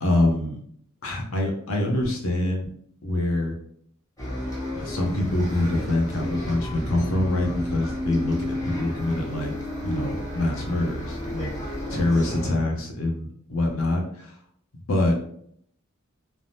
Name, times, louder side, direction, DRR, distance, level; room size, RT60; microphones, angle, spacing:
voice 1, 0.0-0.6 1.0-2.7 3.0-3.6 4.7-9.5 9.8-11.5 11.9-14.3 14.9-15.1, left 1 dB, 75° left, 1 dB, 0.7 m, -25 dB
Bus, 4.2-12.5, left 1 dB, 15° left, 0.8 m, -32 dB
3.3 x 2.0 x 2.7 m, 0.65 s
head